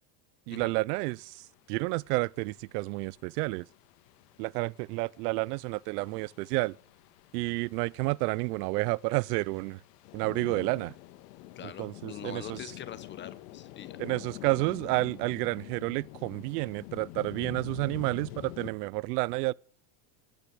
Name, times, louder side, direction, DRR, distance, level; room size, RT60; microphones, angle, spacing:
voice 1, 0.5-3.7 4.4-6.8 7.3-9.8 10.1-10.9 11.6-12.6 14.0-19.5, right 23 dB, 70° right, 0.6 m, -30 dB
sound 1, 1.2-18.7, left 15 dB, 70° left, 1.7 m, -47 dB
voice 2, 11.6-14.0, left 9 dB, 20° left, 1.0 m, -44 dB
15.0 x 10.5 x 7.9 m
cardioid pair, 160°, 49 cm